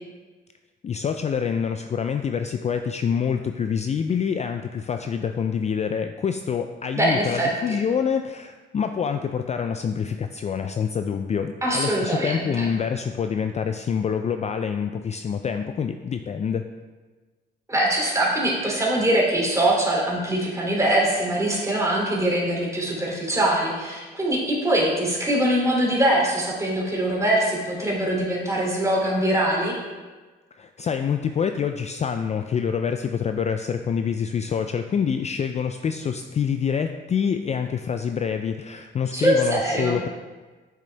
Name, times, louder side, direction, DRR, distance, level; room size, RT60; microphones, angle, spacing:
voice 1, 0.8-16.6 30.6-40.1, left 7 dB, 35° left, 7 dB, 0.4 m, -26 dB
voice 2, 6.9-7.5 11.6-12.7 17.7-29.7 39.1-40.0, right 1 dB, 15° right, -3 dB, 2.7 m, -23 dB
8.3 x 6.6 x 3.3 m, 1.3 s
cardioid pair, 90°, 20 cm